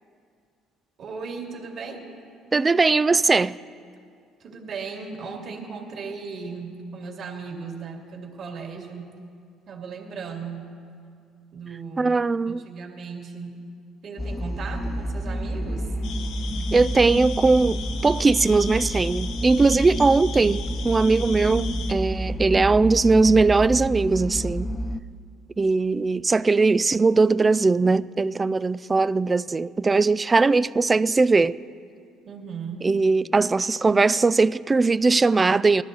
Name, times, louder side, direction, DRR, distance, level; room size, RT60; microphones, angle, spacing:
voice 1, 1.0-2.0 4.4-9.1 9.7-10.8 11.5-12.2 12.5-13.6 14.0-15.9 32.3-32.9, right 5 dB, 55° right, 2.4 m, -36 dB
voice 2, 2.5-3.6 12.0-12.7 16.7-24.7 25.6-31.6 32.8-35.8, right 3 dB, 25° right, 0.3 m, -20 dB
sound 1, 14.2-25.0, equal, 20° left, 0.6 m, -29 dB
sound 2, 16.0-21.9, left 7 dB, 80° left, 1.0 m, -38 dB
19.5 x 13.5 x 4.0 m
cardioid pair, 95°, 0 cm